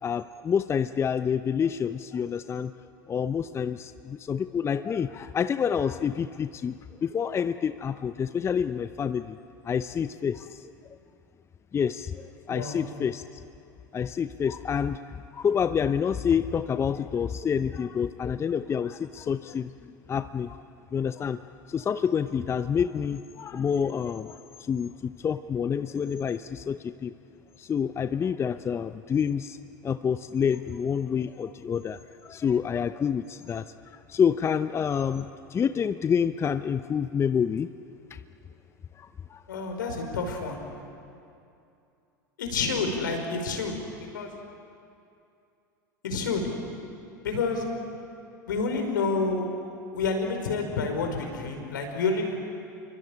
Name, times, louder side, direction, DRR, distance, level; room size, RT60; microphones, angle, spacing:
voice 1, 0.0-2.7 3.1-6.7 7.0-9.4 9.6-10.7 11.7-13.4 13.9-15.0 15.3-20.6 20.9-21.4 21.7-27.1 27.6-29.6 29.8-33.6 34.1-37.7 38.1-38.2 39.0-39.4, left 7 dB, 25° left, 11 dB, 0.8 m, -28 dB
voice 2, 12.5-12.9 39.5-40.6 42.4-43.8 44.1-44.3 46.0-46.5 47.2-47.7 48.5-49.5 49.9-52.3, left 4 dB, 75° left, 4 dB, 5.3 m, -28 dB
28.0 x 23.5 x 8.8 m, 2.6 s
hypercardioid pair, 85°, 11 cm